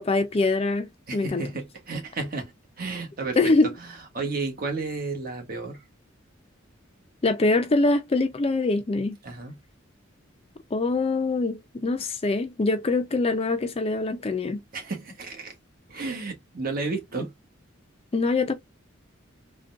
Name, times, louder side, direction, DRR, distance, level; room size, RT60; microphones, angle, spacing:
voice 1, 0.0-1.5 3.4-3.7 7.2-9.2 10.7-14.6 18.1-18.5, left 3 dB, 30° left, 0.4 m, -24 dB
voice 2, 1.1-2.5 2.8-3.4 4.1-5.8 9.2-9.5 14.7-15.5 15.9-17.3, right 3 dB, 45° right, 1.1 m, -32 dB
3.7 x 2.2 x 2.5 m
head